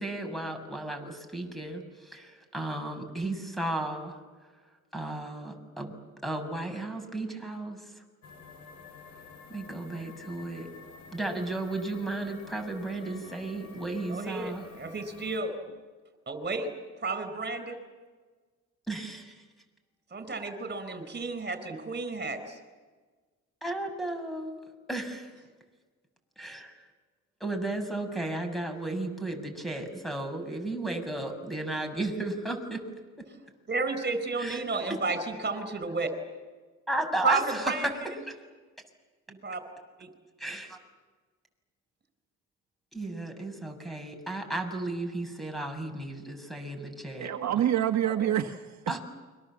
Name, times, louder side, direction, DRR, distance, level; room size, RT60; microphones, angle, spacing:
voice 1, 0.0-4.2 4.9-5.9 6.2-7.8 9.5-10.7 11.1-14.6 18.9-19.4 23.6-24.6 24.9-25.3 26.4-26.7 27.4-32.8 34.4-34.6 36.9-37.9 38.3-38.4 40.4-40.8 42.9-47.3 48.9-49.0, right 2 dB, ahead, 5 dB, 6.4 m, -34 dB
sound 1, 8.2-15.4, left 4 dB, 70° left, 6.5 m, -50 dB
voice 2, 14.1-15.5 16.3-16.7 17.0-17.8 20.1-22.6 33.7-36.1 37.2-37.9 39.3-39.6 40.0-40.1 48.0-48.1, right 3 dB, 35° right, 10 dB, 4.5 m, -32 dB
voice 3, 47.2-48.8, right 11 dB, 65° right, 5 dB, 1.5 m, -27 dB
29.5 x 24.0 x 7.5 m, 1.4 s
cardioid pair, 90°, 30 cm